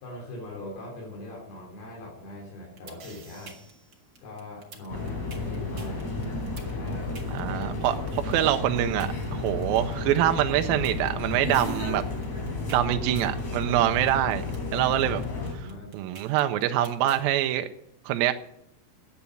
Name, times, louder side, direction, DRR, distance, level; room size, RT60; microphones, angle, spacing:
voice 1, 0.0-3.6 4.2-6.1 6.6-7.5 8.0-8.1 15.5-15.9, left 1 dB, 80° left, -2 dB, 5.0 m, -42 dB
sound 1, 2.8-17.2, right 4 dB, 40° right, 1.4 m, -48 dB
sound 2, 4.9-15.5, left 3 dB, 50° left, 5.3 m, -32 dB
voice 2, 7.3-8.0 8.2-12.0 12.7-14.4 14.7-15.2 15.5-15.7 15.9-17.7 18.1-18.3, right 12 dB, 80° right, 8 dB, 2.2 m, -25 dB
10.5 x 8.4 x 8.4 m, 0.79 s
omnidirectional pair, 4.5 m